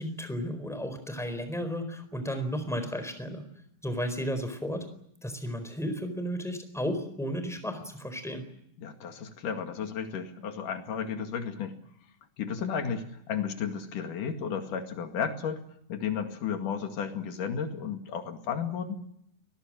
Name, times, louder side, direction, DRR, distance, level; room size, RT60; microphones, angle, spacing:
voice 1, 0.0-3.5 3.8-4.8 5.2-8.5, equal, ahead, 9 dB, 3.9 m, -33 dB
voice 2, 8.8-11.8 12.4-15.6 15.9-19.0, left 7 dB, 65° left, 6 dB, 3.6 m, -33 dB
29.5 x 21.0 x 7.6 m, 0.74 s
omnidirectional pair, 4.2 m